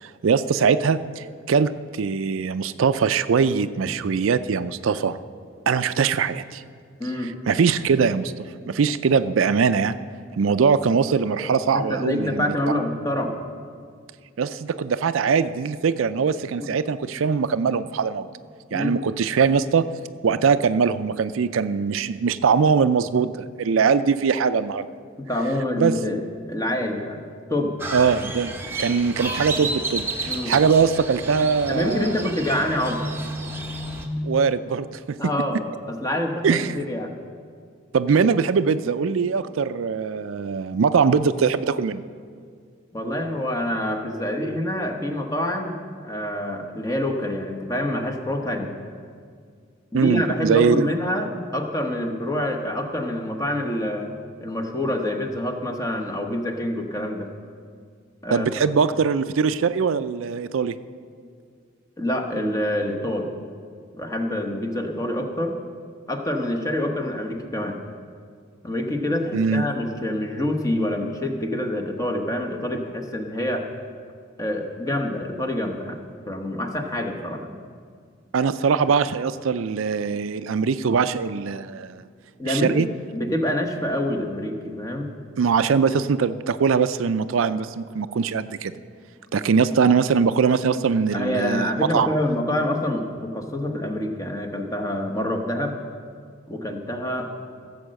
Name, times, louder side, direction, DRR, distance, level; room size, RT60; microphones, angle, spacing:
voice 1, 0.0-5.2 5.7-6.6 7.2-10.0 10.4-12.5 14.4-18.3 18.7-19.9 20.2-24.9 25.8-25.9 27.9-28.5 28.8-32.3 34.2-35.2 36.4-36.8 37.9-42.0 49.9-50.9 58.3-60.7 69.3-69.7 78.3-82.0 82.5-82.9 85.4-88.7 89.3-92.1, right 5 dB, 85° right, 12 dB, 0.4 m, -22 dB
voice 2, 7.0-7.3 11.4-13.3 16.6-16.7 18.7-19.0 25.3-26.2 26.5-27.8 30.2-30.5 31.7-33.0 35.2-35.6 35.9-37.1 42.9-45.8 46.0-48.7 49.9-54.1 54.4-57.3 58.2-58.6 62.0-63.3 63.9-65.6 66.1-67.8 68.6-73.7 74.4-76.0 76.3-77.4 82.4-85.1 91.1-95.8 96.5-97.3, left 1 dB, 15° left, 3 dB, 1.1 m, -26 dB
Crow, 27.8-34.1, right 2 dB, 10° right, 0.9 m, -31 dB
16.0 x 7.7 x 6.4 m, 2.1 s
head